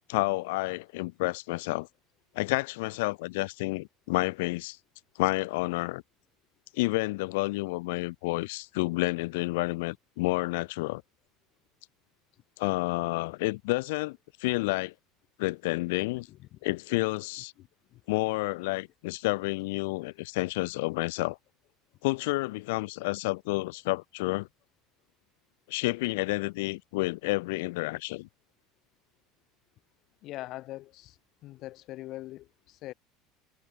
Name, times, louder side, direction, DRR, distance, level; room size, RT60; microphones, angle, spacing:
voice 1, 0.1-1.9 2.3-4.8 5.2-6.0 6.7-11.0 12.6-14.9 15.4-16.3 16.6-17.5 18.1-21.4 22.0-24.5 25.7-28.3, left 23 dB, 80° left, 2.8 m, -30 dB
voice 2, 16.3-16.6 17.6-18.0 30.2-31.2 31.4-32.9, left 16 dB, 40° left, 5.2 m, -42 dB
cardioid pair, 170°, 0 cm